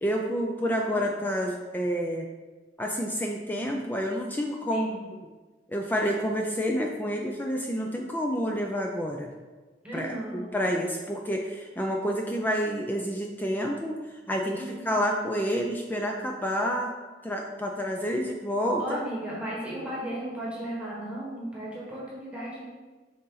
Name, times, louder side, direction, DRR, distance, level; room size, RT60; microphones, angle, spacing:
voice 1, 0.0-2.3 2.8-4.9 5.7-9.3 9.9-14.0 14.3-16.9 17.2-19.0, equal, 10° left, 1 dB, 0.4 m, -29 dB
voice 2, 0.6-1.1 4.7-5.1 9.8-10.4 14.6-14.9 18.8-22.6, right 1 dB, 5° right, -6 dB, 1.4 m, -35 dB
6.6 x 3.8 x 4.0 m, 1.3 s
head